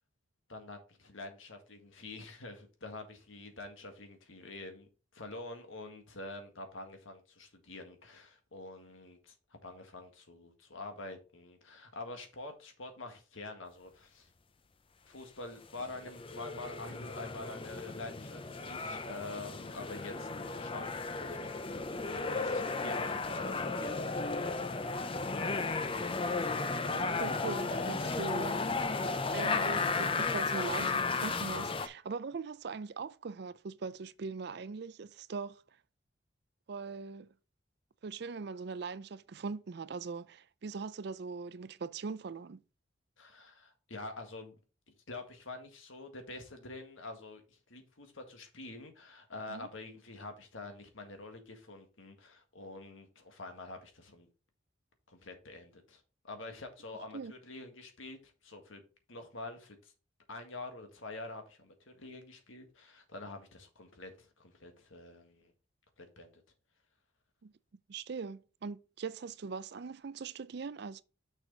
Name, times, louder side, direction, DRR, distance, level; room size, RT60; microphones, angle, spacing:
voice 1, 0.5-14.3 15.1-20.3 20.6-21.6 22.0-24.3 43.2-44.6 45.1-54.3 55.1-58.8 59.1-59.9 60.3-65.5 66.0-66.4, left 2 dB, 85° left, 1.8 m, -47 dB
sound 1, 15.8-31.9, left 3 dB, 25° left, 0.5 m, -34 dB
voice 2, 26.9-28.6 29.3-35.6 36.7-37.3 38.0-42.6 49.5-49.7 57.1-57.3 67.4-67.5 67.9-71.0, right 4 dB, 55° right, 0.4 m, -41 dB
6.3 x 6.3 x 3.9 m
head